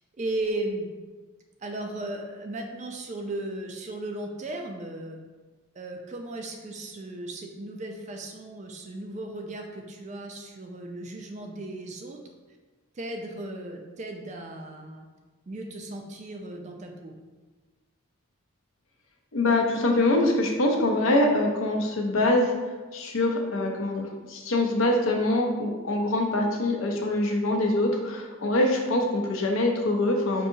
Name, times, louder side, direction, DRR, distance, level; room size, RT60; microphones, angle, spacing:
voice 1, 0.2-0.9 1.6-5.2 5.8-12.2 12.9-15.1 15.5-17.1, right 2 dB, 35° right, 3 dB, 0.3 m, -36 dB
voice 2, 19.3-22.5 22.9-30.5, left 1 dB, 70° left, 1 dB, 0.6 m, -24 dB
5.4 x 2.7 x 2.7 m, 1.3 s
head